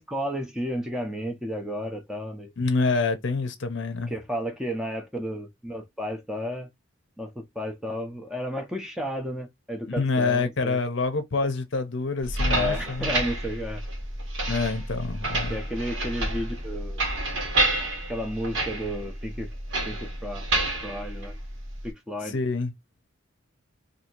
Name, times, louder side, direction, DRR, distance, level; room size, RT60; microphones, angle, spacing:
voice 1, 0.0-2.5 4.1-6.7 7.2-10.8 12.5-13.8 15.5-17.0 18.1-19.5 19.9-20.5 20.8-21.4 21.8-22.4, equal, 5° right, 0.6 m, -32 dB
voice 2, 2.6-4.1 10.0-13.2 14.5-15.6 22.2-22.7, left 3 dB, 60° left, 0.6 m, -27 dB
sound 1, 12.2-21.9, right 2 dB, 65° right, 1.4 m, -29 dB
2.7 x 2.7 x 4.3 m
head